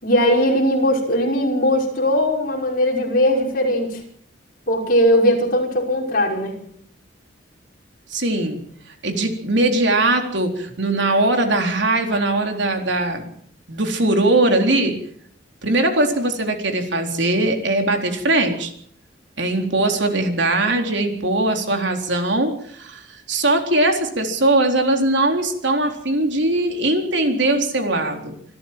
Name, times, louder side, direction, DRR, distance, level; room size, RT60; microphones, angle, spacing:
voice 1, 0.0-4.0 4.7-6.6, equal, 45° left, 0 dB, 5.7 m, -19 dB
voice 2, 8.1-8.6 9.0-13.3 13.7-15.0 15.6-18.7 19.4-28.4, right 2 dB, 65° right, 4 dB, 4.0 m, -20 dB
26.5 x 14.0 x 7.6 m, 0.64 s
head